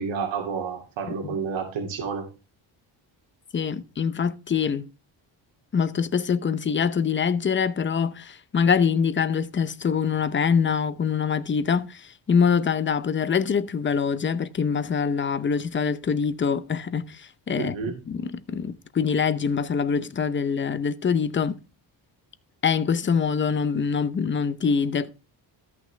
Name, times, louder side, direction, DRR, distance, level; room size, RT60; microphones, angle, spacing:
voice 1, 0.0-2.3 17.6-18.0, right 6 dB, 80° right, 2.5 m, -30 dB
voice 2, 3.5-4.9 5.7-17.7 18.1-21.6 22.6-25.1, left 6 dB, 25° left, 0.6 m, -24 dB
13.5 x 6.0 x 3.3 m
cardioid pair, 110°, 45 cm